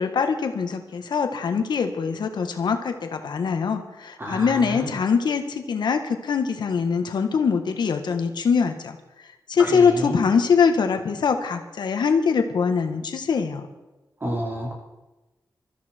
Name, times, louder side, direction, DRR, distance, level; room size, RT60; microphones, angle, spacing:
voice 1, 0.0-9.0 9.5-13.6, left 6 dB, 80° left, 6 dB, 1.7 m, -23 dB
voice 2, 4.2-4.9 9.6-10.1 14.2-14.7, equal, 30° right, -2 dB, 5.0 m, -30 dB
21.5 x 14.0 x 4.6 m, 1.1 s
wide cardioid pair, 115°, 7 cm